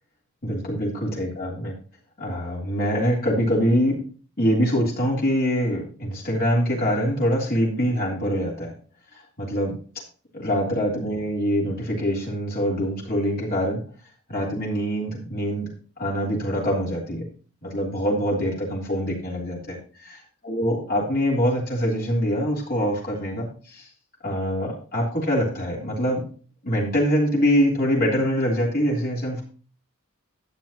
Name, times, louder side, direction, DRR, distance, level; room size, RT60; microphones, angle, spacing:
voice 1, 0.4-1.7 2.2-4.0 4.4-8.7 9.1-9.8 10.3-13.8 14.3-15.7 16.0-17.2 17.6-23.9 24.2-26.2 26.6-29.4, equal, 45° left, -3 dB, 3.3 m, -24 dB
12.0 x 8.8 x 2.9 m, 0.39 s
head